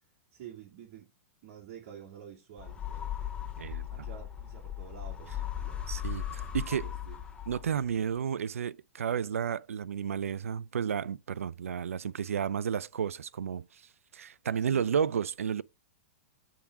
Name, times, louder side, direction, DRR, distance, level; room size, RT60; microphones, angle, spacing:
voice 1, 0.3-1.1 1.4-3.2 3.9-5.8 6.7-7.2 14.6-14.9, right 9 dB, 50° right, 2.1 m, -49 dB
sound 1, 2.6-7.9, left 10 dB, 15° left, 1.5 m, -37 dB
voice 2, 3.6-4.1 5.9-6.9 7.5-13.8 14.1-15.6, right 7 dB, 80° right, 0.4 m, -32 dB
8.4 x 3.6 x 4.7 m
hypercardioid pair, 115°, 7 cm